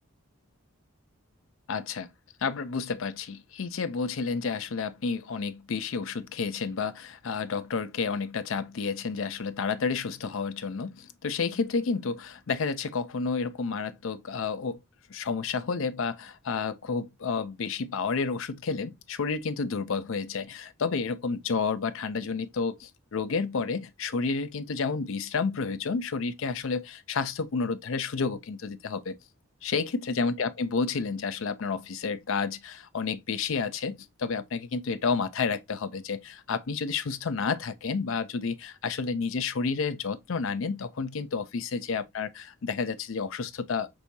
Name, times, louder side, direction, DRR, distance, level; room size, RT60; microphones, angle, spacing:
voice 1, 1.7-2.1 2.4-14.8 15.1-29.2 29.6-43.9, left 5 dB, 70° left, 0.5 m, -30 dB
6.1 x 2.7 x 2.6 m
head